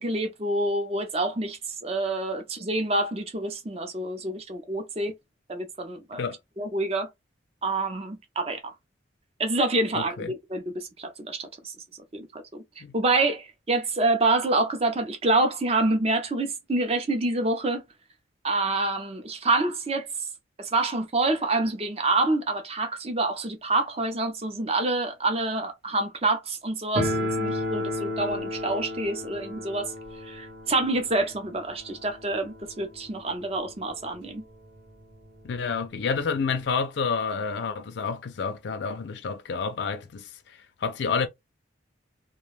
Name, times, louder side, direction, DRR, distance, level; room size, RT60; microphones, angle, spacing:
voice 1, 0.0-5.1 5.5-6.2 6.6-7.1 7.6-8.7 9.4-11.7 12.1-12.6 12.9-17.8 18.4-20.1 20.6-29.9 30.2-34.4, right 2 dB, 30° right, 0.5 m, -27 dB
voice 2, 9.9-10.3 12.8-12.9 35.4-41.3, left 5 dB, 65° left, 0.4 m, -29 dB
sound 1, 27.0-33.7 33.9-34.0 34.3-34.4 35.1-35.2 35.5-36.7, left 1 dB, 60° right, 1.0 m, -33 dB
2.4 x 2.2 x 3.1 m
head